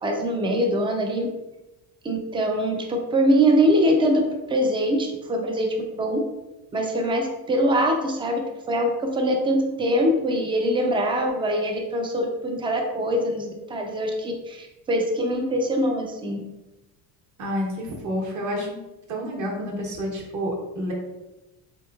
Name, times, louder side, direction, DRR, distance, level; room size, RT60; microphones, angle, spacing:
voice 1, 0.0-1.3 2.0-4.2 4.5-6.2 6.7-8.4 8.7-16.4, equal, 15° right, 2 dB, 0.3 m, -23 dB
voice 2, 17.4-18.8 19.1-20.9, equal, 45° right, 0 dB, 1.0 m, -29 dB
3.5 x 2.8 x 2.3 m, 1.0 s
cardioid pair, 125°, 40 cm